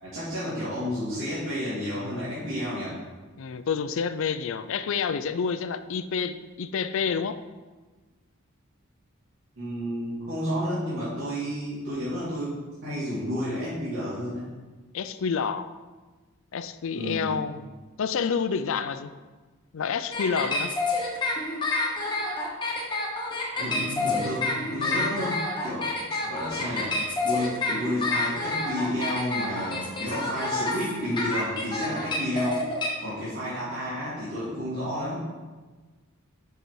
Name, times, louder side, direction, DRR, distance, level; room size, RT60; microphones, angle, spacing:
voice 1, 0.0-3.0 9.6-14.5 16.9-17.4 23.6-25.9 26.2-26.9 27.2-32.6 33.0-35.2, equal, 65° right, -11 dB, 2.4 m, -31 dB
voice 2, 3.4-7.4 14.9-15.7 16.5-17.7 18.0-19.1 19.7-20.7, left 6 dB, 65° left, 12 dB, 0.4 m, -28 dB
sound 1, 20.1-32.9, left 2 dB, 20° left, 1.2 m, -28 dB
6.6 x 5.8 x 4.7 m, 1.3 s
head